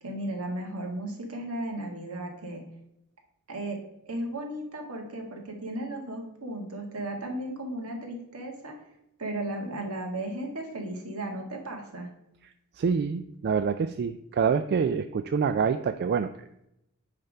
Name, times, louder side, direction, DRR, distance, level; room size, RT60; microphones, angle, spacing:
voice 1, 0.0-2.6 3.5-3.8 4.1-8.8 9.2-12.1, right 1 dB, 70° right, 2 dB, 1.7 m, -35 dB
voice 2, 12.4-16.7, right 6 dB, 50° right, 9 dB, 0.3 m, -27 dB
9.4 x 3.4 x 5.4 m, 0.82 s
head